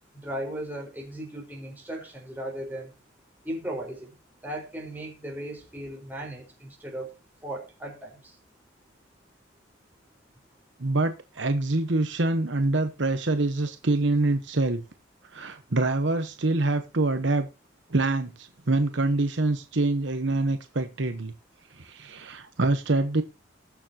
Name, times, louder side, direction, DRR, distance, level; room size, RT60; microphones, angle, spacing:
voice 1, 0.2-2.9 3.4-4.1 4.4-7.1 7.4-8.3, right 1 dB, 10° right, -1 dB, 4.5 m, -36 dB
voice 2, 10.8-14.8 15.3-17.5 17.9-21.3 21.8-23.2, right 2 dB, 65° right, 8 dB, 1.1 m, -25 dB
20.0 x 7.0 x 2.9 m, 0.28 s
head